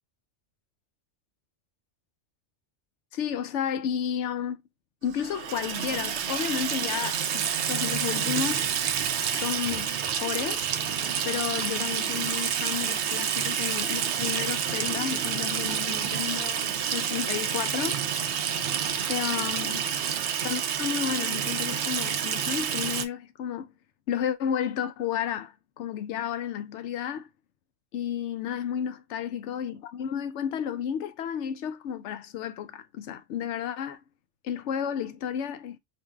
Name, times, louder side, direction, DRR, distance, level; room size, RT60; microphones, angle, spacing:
voice 1, 3.1-4.6 5.0-8.6 9.3-10.6 11.2-18.0 19.1-19.9 20.4-23.7 24.1-27.3 27.9-34.0 34.4-35.8, left 9 dB, 80° left, 0.9 m, -32 dB
Water tap faucet / Sink (filling or washing), 5.1-23.0, right 8 dB, 75° right, 0.8 m, -29 dB
4.4 x 2.7 x 2.3 m
omnidirectional pair, 1.2 m